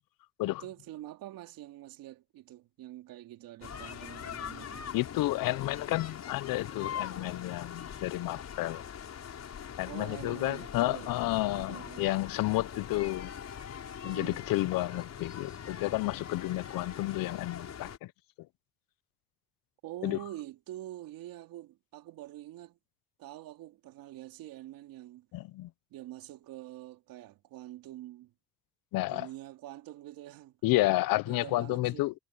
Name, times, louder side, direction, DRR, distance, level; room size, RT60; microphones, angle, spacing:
voice 1, 0.4-4.9 9.9-11.1 11.5-12.2 14.0-14.4 19.8-22.8 23.2-25.3 25.9-28.3 29.0-30.6 31.3-32.1, right 14 dB, 75° right, 2.8 m, -46 dB
sound 1, 3.6-18.0, left 8 dB, 45° left, 5.8 m, -42 dB
voice 2, 4.9-8.8 9.8-13.3 14.0-18.1 20.0-20.2 25.3-25.7 28.9-29.3 30.6-32.1, left 18 dB, 70° left, 0.9 m, -31 dB
cardioid pair, 95°, 35 cm